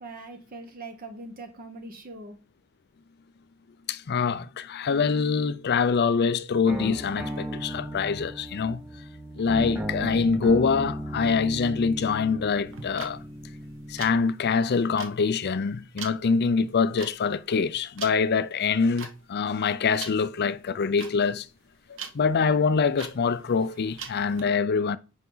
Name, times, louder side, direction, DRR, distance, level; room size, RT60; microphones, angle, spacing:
voice 1, 0.0-2.4, right 2 dB, 45° right, 0.9 m, -41 dB
voice 2, 3.9-8.8 9.3-13.2 13.9-21.5 22.1-25.0, left 5 dB, 50° left, 0.5 m, -25 dB
sound 1, 6.7-14.1, equal, 10° right, 1.8 m, -36 dB
sound 2, 12.7-24.4, right 6 dB, 65° right, 1.2 m, -43 dB
8.2 x 5.2 x 3.9 m
head